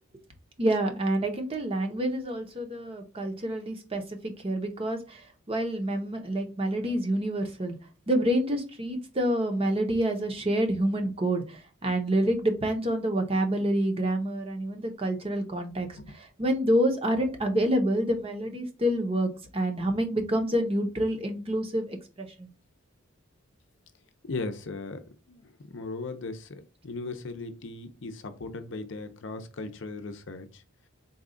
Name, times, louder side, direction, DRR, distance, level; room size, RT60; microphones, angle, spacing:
voice 1, 0.6-7.8 8.1-16.0 16.4-22.5, right 1 dB, 25° right, 0.7 m, -28 dB
voice 2, 24.2-30.6, left 3 dB, 60° left, 0.6 m, -38 dB
4.1 x 2.4 x 3.7 m
head